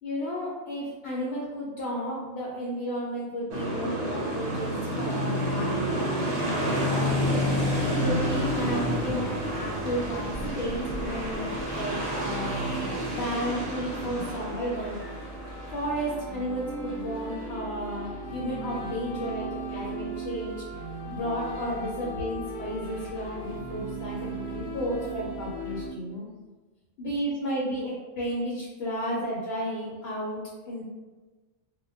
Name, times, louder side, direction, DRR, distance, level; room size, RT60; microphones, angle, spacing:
voice 1, 0.0-7.2 7.9-11.5 11.7-12.5 13.1-15.0 15.7-18.1 18.3-20.6 21.1-26.2 27.0-30.4 30.7-30.8, equal, 65° left, -5 dB, 0.8 m, -33 dB
sound 1, 3.5-16.9, equal, 65° right, 0.9 m, -30 dB
sound 2, 7.1-25.9, right 2 dB, 90° left, 1.0 m, -38 dB
2.2 x 2.1 x 3.3 m, 1.2 s
omnidirectional pair, 1.3 m